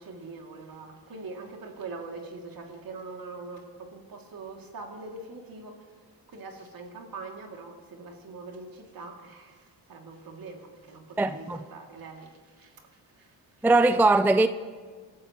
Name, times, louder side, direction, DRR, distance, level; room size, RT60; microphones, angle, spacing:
voice 1, 0.0-13.7, right 3 dB, 60° right, 2.6 m, -43 dB
voice 2, 11.2-11.6 13.6-14.5, right 2 dB, 5° right, 0.4 m, -20 dB
24.0 x 13.0 x 3.0 m
cardioid pair, 70°, 40 cm